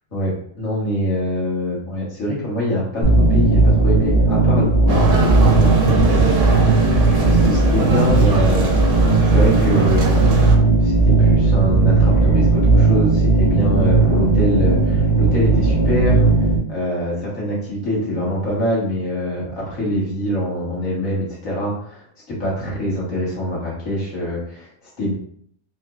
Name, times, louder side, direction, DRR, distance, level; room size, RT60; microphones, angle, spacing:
voice 1, 0.1-25.1, equal, 70° left, -5 dB, 1.9 m, -24 dB
sound 1, 3.0-16.6, right 3 dB, 55° left, 1.3 m, -16 dB
sound 2, 4.9-10.5, right 3 dB, 65° right, 1.1 m, -23 dB
4.3 x 2.9 x 2.4 m, 0.64 s
omnidirectional pair, 1.5 m